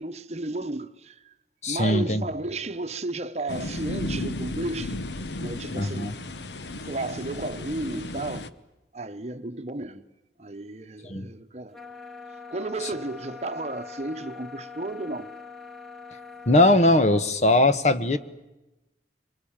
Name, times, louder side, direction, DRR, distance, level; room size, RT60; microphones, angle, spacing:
voice 1, 0.0-1.3 1.7-5.0 5.4-6.2 6.8-8.5 8.9-10.0 10.4-11.8 12.5-15.3, right 2 dB, 40° right, 1.0 m, -33 dB
voice 2, 1.6-2.2 5.7-6.1 11.1-11.3 16.5-18.2, left 2 dB, 40° left, 1.3 m, -20 dB
sound 1, 3.5-8.5, left 2 dB, 80° left, 1.1 m, -34 dB
sound 2, 11.7-17.3, left 5 dB, ahead, 1.8 m, -43 dB
25.0 x 23.0 x 8.9 m
head